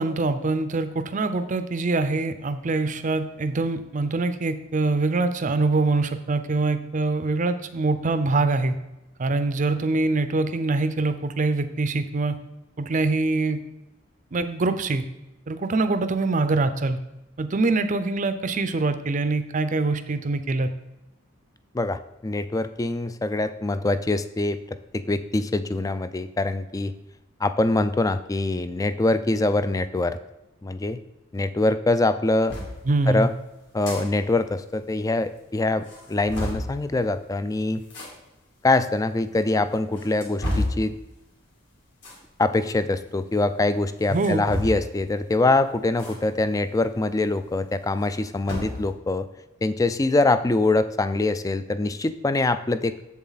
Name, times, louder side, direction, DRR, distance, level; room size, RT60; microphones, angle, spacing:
voice 1, 0.0-8.7 9.2-12.4 12.8-13.6 14.3-15.0 15.5-17.0 17.4-20.7 32.9-33.3 44.1-44.4, right 3 dB, 40° right, 11 dB, 0.5 m, -24 dB
voice 2, 21.7-24.6 24.9-26.9 27.4-30.2 30.6-31.0 31.3-32.6 33.1-33.3 33.7-37.8 38.6-40.9 42.4-49.3 49.6-53.0, left 2 dB, 15° left, 12 dB, 0.3 m, -24 dB
sound 1, 32.5-32.7 33.6-34.0 34.4-34.5 34.7-34.8 35.4-35.5 35.8-36.7 37.8-38.1 38.9-39.0 39.7-40.8 42.0-42.2 44.0-45.0 46.0-46.2 46.5-46.6 47.9-48.8, left 1 dB, 60° left, 2.6 m, -30 dB
7.5 x 7.2 x 4.0 m, 0.97 s
head